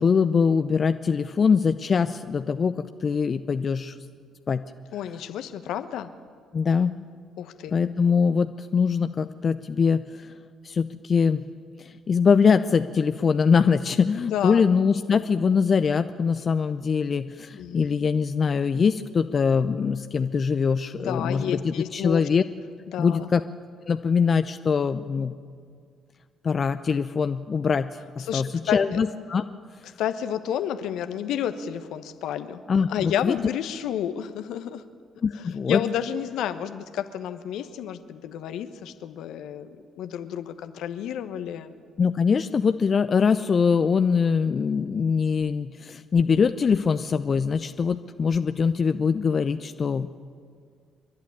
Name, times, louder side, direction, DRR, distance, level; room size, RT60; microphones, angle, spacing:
voice 1, 0.0-4.0 4.5-4.6 6.5-7.0 7.7-10.3 10.6-11.4 11.8-22.4 23.0-23.4 23.9-25.3 26.4-29.4 32.7-33.4 35.2-35.8 42.0-50.2, left 6 dB, 45° left, 10 dB, 0.6 m, -23 dB
voice 2, 4.9-6.1 7.4-7.7 14.3-14.6 15.1-15.2 17.6-17.9 21.0-22.2 22.9-23.3 28.2-28.8 30.0-32.6 32.9-34.8 35.3-41.7, left 10 dB, 70° left, 10 dB, 1.1 m, -31 dB
28.0 x 11.5 x 9.8 m, 2.1 s
hypercardioid pair, 50°, 0 cm